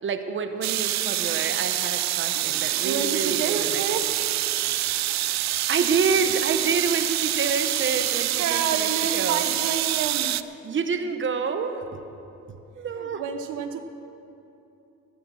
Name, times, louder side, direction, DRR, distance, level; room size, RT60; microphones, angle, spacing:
voice 1, 0.0-3.8 5.6-9.4 10.6-12.0 12.5-13.2, right 5 dB, 40° right, 8 dB, 1.1 m, -28 dB
sound 1, 0.6-10.4, right 14 dB, 65° right, 0.5 m, -26 dB
voice 2, 2.3-4.2 8.4-10.6 12.9-13.8, right 7 dB, 85° right, 8 dB, 0.9 m, -30 dB
13.5 x 11.0 x 6.4 m, 2.8 s
cardioid pair, 90°, 30 cm